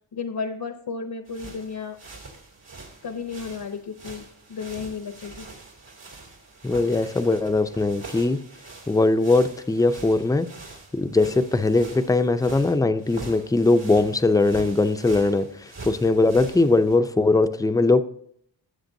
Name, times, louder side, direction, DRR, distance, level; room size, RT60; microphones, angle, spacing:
voice 1, 0.1-2.0 3.0-5.5, left 5 dB, 55° left, 7 dB, 0.8 m, -33 dB
sound 1, 1.3-17.0, right 3 dB, 75° right, 2.8 m, -44 dB
voice 2, 6.6-8.4 8.9-10.5 10.9-18.0, left 2 dB, 10° left, 10 dB, 0.5 m, -20 dB
16.5 x 7.7 x 2.7 m, 0.65 s
wide cardioid pair, 80°, 43 cm